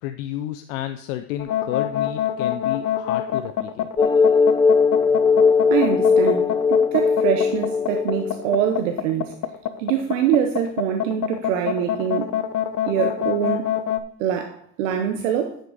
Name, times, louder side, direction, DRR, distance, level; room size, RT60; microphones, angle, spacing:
voice 1, 0.0-3.9, left 13 dB, 85° left, 0.6 m, -31 dB
sound 1, 1.4-14.0, left 11 dB, 55° left, 0.9 m, -25 dB
sound 2, 4.0-8.6, left 5 dB, 10° left, 0.3 m, -19 dB
voice 2, 5.7-9.4 9.8-12.3 12.9-13.7 14.2-15.6, right 9 dB, 90° right, 0.9 m, -24 dB
9.4 x 6.4 x 4.0 m
supercardioid pair, 70°, 38 cm